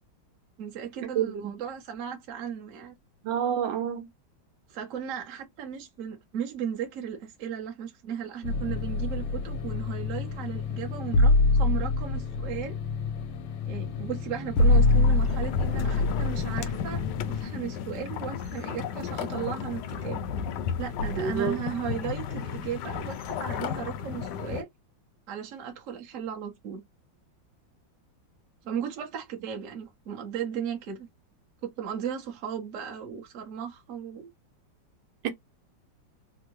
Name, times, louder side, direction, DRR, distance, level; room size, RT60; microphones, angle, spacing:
voice 1, 0.6-2.9 4.7-12.8 13.7-17.0 17.3-20.3 20.8-24.7 25.3-26.8 28.6-31.1 31.6-34.3, right 8 dB, 55° right, 1.0 m, -36 dB
voice 2, 1.1-1.5 3.2-4.1 21.2-21.6 35.2-35.3, right 8 dB, 80° right, 1.5 m, -28 dB
sound 1, 8.4-17.4, left 3 dB, 90° left, 1.4 m, -25 dB
sound 2, 14.6-24.6, left 7 dB, 75° left, 1.1 m, -33 dB
3.5 x 2.0 x 3.0 m
omnidirectional pair, 2.1 m